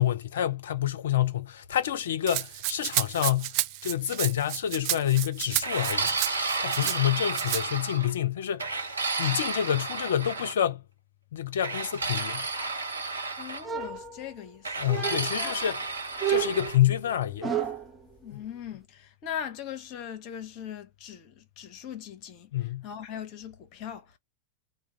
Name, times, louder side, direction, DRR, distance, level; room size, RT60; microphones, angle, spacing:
voice 1, 0.0-3.5 3.8-6.3 6.6-8.9 9.2-10.8 11.3-12.5 14.8-15.8 16.3-17.5 18.3-18.4 22.5-22.8, left 11 dB, 60° left, 0.4 m, -28 dB
Rattle (instrument), 2.3-7.0 7.3-7.6, right 16 dB, 45° right, 0.3 m, -31 dB
sound 1, 5.6-8.1 8.6-10.5 11.6-13.7 14.6-16.8, right 3 dB, 75° right, 0.8 m, -32 dB
voice 2, 13.4-14.8 15.4-15.7 18.2-24.2, left 9 dB, 40° left, 0.8 m, -40 dB
sound 2, 13.6-14.5 14.9-15.5 16.2-18.0, right 9 dB, 5° right, 0.8 m, -31 dB
2.3 x 2.1 x 2.6 m
figure-of-eight pair, 90°, 0 cm